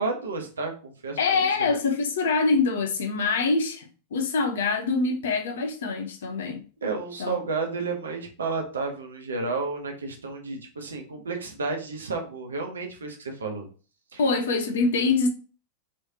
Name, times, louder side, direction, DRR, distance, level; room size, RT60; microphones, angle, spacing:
voice 1, 0.0-1.7 6.8-13.7 14.1-14.2, right 3 dB, 70° right, 0.8 m, -32 dB
voice 2, 1.2-6.6 7.2-7.4 14.2-15.3, left 4 dB, 60° left, 0.6 m, -24 dB
3.3 x 3.2 x 2.7 m
figure-of-eight pair, 90°, 0 cm